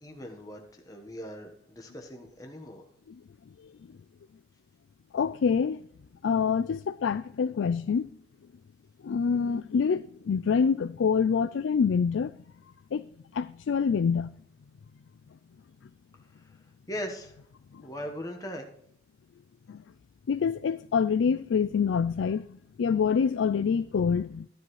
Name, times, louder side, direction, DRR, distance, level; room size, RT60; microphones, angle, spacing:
voice 1, 0.0-2.8 16.2-17.4 17.8-18.7, equal, 20° left, 1.2 m, -40 dB
voice 2, 5.1-5.8 6.2-8.1 9.0-12.4 12.9-14.3 17.7-17.8 19.7-19.8 20.3-24.5, left 6 dB, 85° left, 0.4 m, -26 dB
14.0 x 10.5 x 3.2 m
head